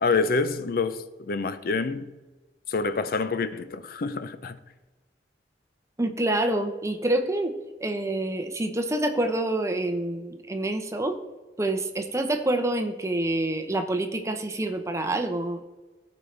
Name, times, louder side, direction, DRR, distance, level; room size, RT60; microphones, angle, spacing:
voice 1, 0.0-2.1 2.7-4.6, left 4 dB, 55° left, 0.5 m, -27 dB
voice 2, 6.0-11.2 11.6-15.6, right 1 dB, 15° right, 0.8 m, -27 dB
15.0 x 5.2 x 3.3 m
head